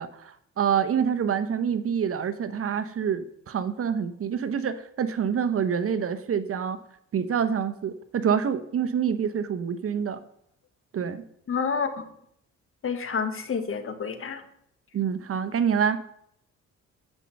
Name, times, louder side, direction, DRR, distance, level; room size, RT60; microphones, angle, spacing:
voice 1, 0.0-6.8 7.1-10.2 10.9-11.2 14.9-16.0, right 7 dB, 50° right, 12 dB, 0.9 m, -26 dB
voice 2, 11.5-11.9 12.8-14.4, left 6 dB, 45° left, 9 dB, 1.4 m, -28 dB
9.8 x 5.4 x 6.9 m, 0.71 s
cardioid pair, 90°, 30 cm